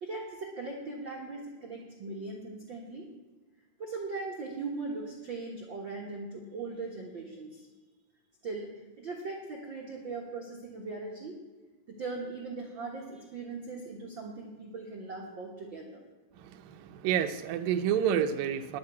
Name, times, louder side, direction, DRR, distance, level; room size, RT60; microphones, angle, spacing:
voice 1, 0.0-3.1 3.8-7.7 8.4-8.7 9.0-11.4 11.9-16.0, right 3 dB, 55° right, 1.3 m, -39 dB
voice 2, 16.4-18.8, right 9 dB, 75° right, 2.3 m, -29 dB
10.5 x 9.4 x 8.3 m
omnidirectional pair, 4.2 m